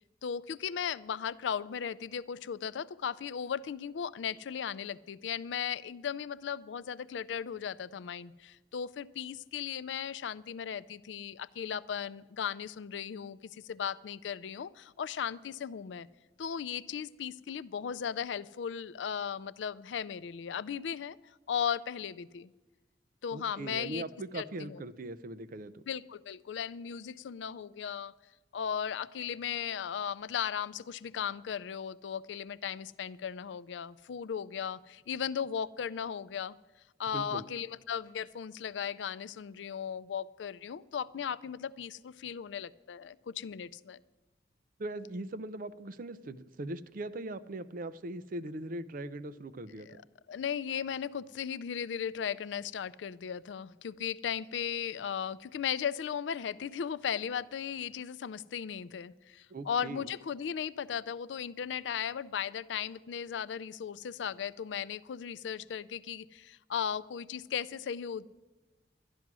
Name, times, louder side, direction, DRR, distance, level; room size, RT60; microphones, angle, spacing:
voice 1, 0.2-16.1 16.4-21.2 21.5-22.5 23.2-24.0 24.3-24.8 25.9-28.1 28.5-36.6 37.0-44.0 49.8-50.0 50.3-68.3, left 8 dB, 90° left, 17 dB, 0.4 m, -36 dB
voice 2, 23.3-25.8 37.1-37.5 44.8-49.9 59.5-60.0, right 2 dB, 50° right, 12 dB, 0.5 m, -40 dB
12.0 x 11.0 x 6.1 m, 1.2 s
head